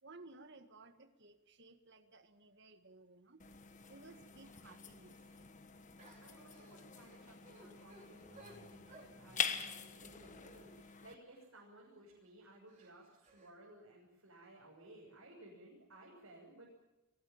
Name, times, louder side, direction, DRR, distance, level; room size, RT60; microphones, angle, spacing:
voice 1, 0.0-3.4 3.9-5.2, right 3 dB, 50° right, 9 dB, 1.9 m, -58 dB
sound 1, 3.4-11.1, left 7 dB, 35° left, 1.5 m, -45 dB
sound 2, 5.1-5.4 6.0-11.6 12.1-12.3 12.7-13.5, right 2 dB, 35° right, 4.7 m, -62 dB
voice 2, 6.2-16.7, right 1 dB, 70° right, -4 dB, 6.8 m, -58 dB
23.0 x 18.0 x 8.9 m, 0.98 s
head